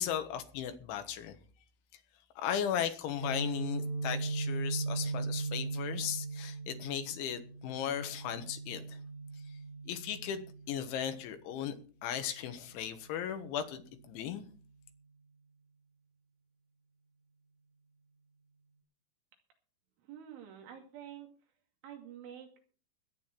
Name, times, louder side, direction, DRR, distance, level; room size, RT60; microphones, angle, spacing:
voice 1, 0.0-1.4 2.4-9.0 9.9-11.8 12.0-13.8 14.1-14.4, left 9 dB, 80° left, 3.6 m, -36 dB
Guitar, 3.2-11.0, right 3 dB, 40° right, 3.2 m, -38 dB
voice 2, 20.1-21.3 21.8-22.6, right 9 dB, 75° right, 4.9 m, -48 dB
21.5 x 9.3 x 4.5 m
omnidirectional pair, 5.6 m